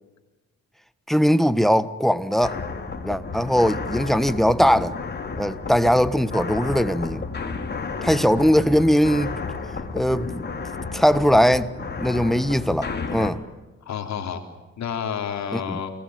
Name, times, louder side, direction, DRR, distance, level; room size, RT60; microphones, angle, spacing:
voice 1, 1.1-2.6 3.0-4.9 5.4-7.2 8.0-9.4 9.9-10.4 10.9-11.7 12.0-13.4 15.5-15.8, equal, ahead, 1.4 m, -20 dB
sound 1, 2.4-13.3, left 4 dB, 35° left, 4.1 m, -32 dB
voice 2, 8.0-8.3 13.9-14.4 14.8-15.9, left 7 dB, 65° left, 3.6 m, -30 dB
29.0 x 20.5 x 9.3 m
cardioid pair, 90°, 30 cm